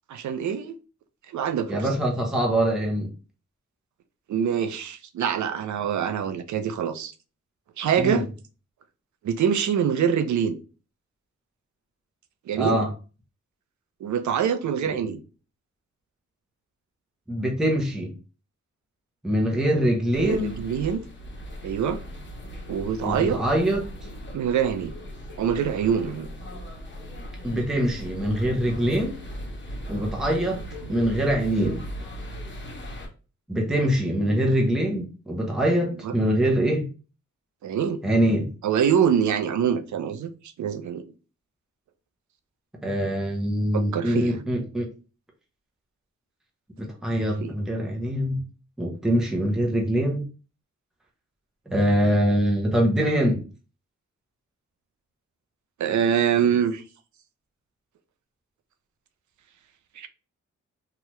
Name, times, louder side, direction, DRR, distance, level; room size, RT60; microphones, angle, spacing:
voice 1, 0.1-0.8 1.3-1.9 4.3-7.1 7.8-8.2 9.2-10.6 12.5-12.8 14.0-15.2 19.8-21.0 21.6-22.0 22.7-23.4 24.3-24.9 25.4-26.3 30.9-31.0 36.0-36.1 37.6-38.0 38.6-40.3 40.6-41.1 43.7-44.4 47.4-47.5 55.8-56.8 60.0-60.1, right 8 dB, 70° right, 0.5 m, -25 dB
voice 2, 1.7-3.1 8.0-8.2 12.5-12.9 17.3-18.1 19.2-20.6 23.0-23.8 27.4-29.2 29.9-30.6 30.9-31.9 33.5-36.9 38.0-38.5 42.8-44.8 46.8-48.4 48.8-50.2 51.7-53.5, equal, ahead, 0.8 m, -24 dB
sound 1, 20.1-33.1, equal, 35° left, 1.0 m, -38 dB
2.8 x 2.3 x 3.1 m
cardioid pair, 85°, 31 cm